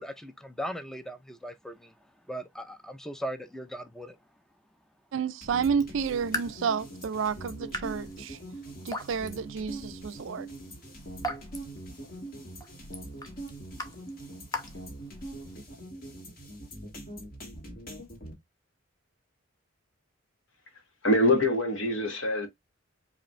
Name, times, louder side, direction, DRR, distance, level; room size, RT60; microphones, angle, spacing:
voice 1, 0.0-1.9 2.3-4.2, equal, ahead, 0.4 m, -38 dB
voice 2, 5.1-8.4 8.8-10.5, right 6 dB, 70° right, 0.4 m, -30 dB
sound 1, 5.4-18.3, right 1 dB, 50° left, 2.0 m, -42 dB
Raindrop / Drip, 5.7-15.6, left 1 dB, 20° left, 0.8 m, -42 dB
voice 3, 21.0-22.5, left 1 dB, 70° left, 1.5 m, -24 dB
5.0 x 2.5 x 3.1 m
head